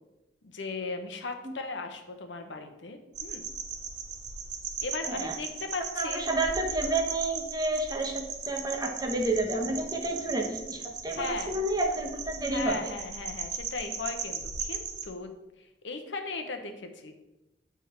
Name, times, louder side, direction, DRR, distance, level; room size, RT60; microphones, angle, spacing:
voice 1, 0.4-3.5 4.8-6.3 11.1-11.6 12.5-15.4 15.8-17.1, left 3 dB, 85° left, 5 dB, 0.8 m, -37 dB
sound 1, 3.1-15.1, right 6 dB, 65° right, 0.8 m, -38 dB
voice 2, 6.0-12.9, right 2 dB, 20° right, 2 dB, 0.9 m, -30 dB
8.7 x 3.6 x 4.4 m, 0.98 s
head